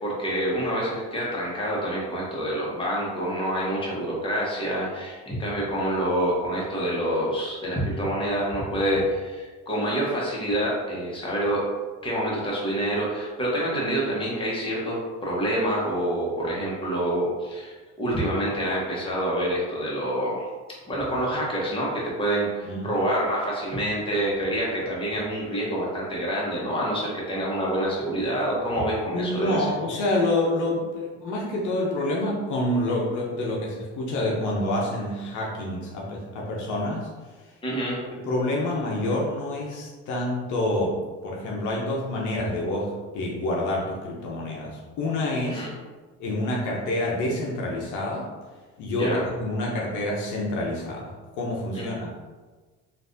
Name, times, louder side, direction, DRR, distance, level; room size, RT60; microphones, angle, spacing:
voice 1, 0.0-11.6 12.0-20.5 20.9-29.6 37.6-38.0 45.5-45.7 49.0-49.2 51.7-51.9, right 1 dB, 15° left, -5 dB, 1.1 m, -27 dB
voice 2, 29.1-37.1 38.1-45.6 46.2-48.3 48.8-52.1, left 1 dB, 65° left, -3 dB, 0.7 m, -27 dB
3.2 x 2.5 x 2.6 m, 1.3 s
supercardioid pair, 90°, 32 cm